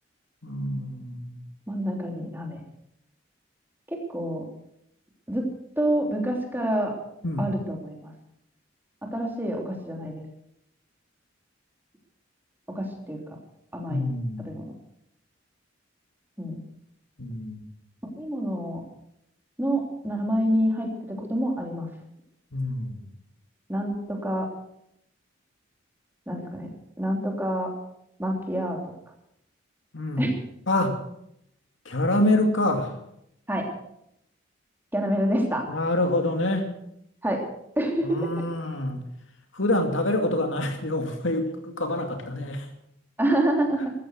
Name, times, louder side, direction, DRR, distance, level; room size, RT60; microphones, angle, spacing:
voice 1, 0.4-1.4 7.2-7.5 13.9-14.5 17.2-17.6 22.5-23.1 29.9-30.4 30.7-31.0 31.9-32.9 35.7-36.7 38.0-39.0 39.5-42.7, left 1 dB, 80° left, 5 dB, 2.5 m, -26 dB
voice 2, 1.7-2.6 3.9-4.4 5.3-5.4 5.8-6.9 7.4-8.1 9.0-10.2 12.7-13.4 13.7-14.0 14.4-14.7 16.4-16.6 18.2-18.8 19.6-21.9 23.7-24.5 26.3-26.7 27.0-27.7 28.2-28.9 30.2-30.3 33.5-33.7 34.9-35.6 37.2-37.4 37.8-38.4 43.2-43.9, right 1 dB, 10° right, 1 dB, 3.2 m, -27 dB
15.0 x 13.5 x 6.5 m, 0.77 s
head